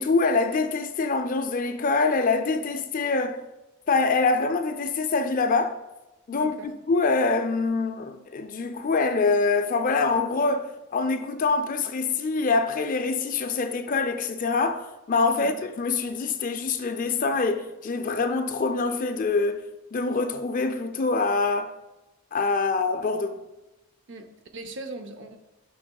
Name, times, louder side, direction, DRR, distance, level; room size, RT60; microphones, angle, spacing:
voice 1, 0.0-3.4 3.9-5.8 6.3-6.6 6.9-19.7 19.9-21.7 22.3-23.4, left 4 dB, 35° left, 0.4 m, -25 dB
voice 2, 6.3-6.7 15.4-15.5 24.1-25.4, right 2 dB, 55° right, 0.6 m, -40 dB
8.4 x 5.6 x 2.3 m
head